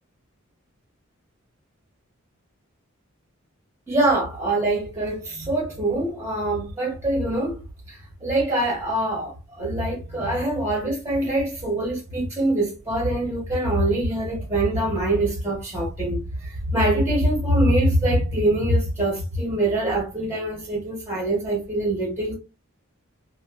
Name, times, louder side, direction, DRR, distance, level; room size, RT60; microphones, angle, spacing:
voice 1, 3.9-7.6 8.2-22.4, right 1 dB, 15° right, 1.2 m, -24 dB
3.2 x 2.3 x 2.7 m
head